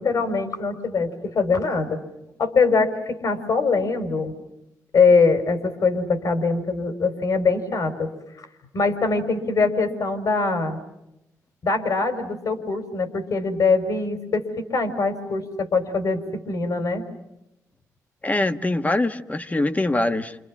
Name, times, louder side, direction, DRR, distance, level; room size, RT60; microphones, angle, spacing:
voice 1, 0.0-2.0 2.4-4.3 4.9-8.1 8.7-10.8 11.6-17.0, left 4 dB, 65° left, 8 dB, 4.2 m, -22 dB
voice 2, 18.2-20.4, left 2 dB, 25° left, 9 dB, 1.3 m, -23 dB
28.5 x 27.5 x 7.3 m, 0.87 s
cardioid pair, 70°, 6 cm